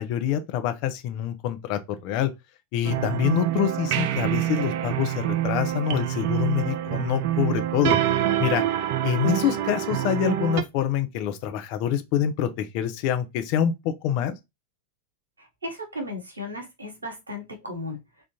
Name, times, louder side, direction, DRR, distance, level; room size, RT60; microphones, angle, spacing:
voice 1, 0.0-2.3 2.7-8.0 8.4-8.6 9.0-14.4, left 9 dB, 45° left, 0.6 m, -26 dB
sound 1, 2.8-10.6, right 12 dB, 50° right, 0.4 m, -26 dB
voice 2, 15.4-18.0, left 1 dB, 75° right, 1.0 m, -35 dB
3.6 x 2.4 x 2.9 m
figure-of-eight pair, 90°, 0 cm